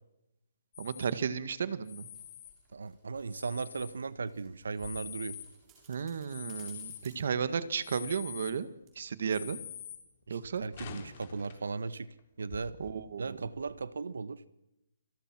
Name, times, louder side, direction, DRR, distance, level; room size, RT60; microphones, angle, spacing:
sound 1, 0.7-1.1 1.8-2.5 3.2-4.0 4.6-5.5 6.3-7.0 7.8-8.5 9.3-10.0 10.4-11.7 12.2-12.3 12.5-12.9 13.4-13.8, left 10 dB, 30° left, 3.6 m, -46 dB
voice 1, 0.8-2.1 5.9-8.7 9.0-9.6 10.3-10.6 12.8-13.4, right 6 dB, 50° right, 13 dB, 1.8 m, -34 dB
sound 2, 1.6-8.6 8.9-9.0, right 5 dB, 15° right, 6.6 m, -64 dB
voice 2, 2.7-5.4 10.3-12.1 12.4-12.7 13.2-14.4, right 4 dB, 85° right, 15 dB, 1.4 m, -37 dB
29.0 x 24.0 x 6.2 m, 0.89 s
hypercardioid pair, 175°, 0 cm